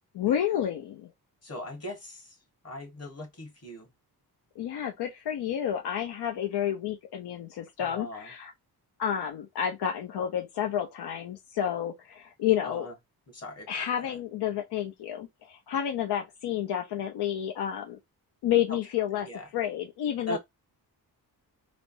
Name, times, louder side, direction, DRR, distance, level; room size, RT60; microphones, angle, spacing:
voice 1, 0.1-1.1 4.6-8.5 9.0-12.9 13.7-18.0 18.4-19.3 19.5-20.4, left 10 dB, 85° left, 0.6 m, -30 dB
voice 2, 1.4-2.4 2.6-3.9 7.8-8.3 12.6-12.9 13.3-14.2 18.7-18.8 19.2-19.5 20.3-20.4, left 1 dB, 40° left, 1.3 m, -39 dB
3.3 x 2.0 x 2.5 m
cardioid pair, 95°, 39 cm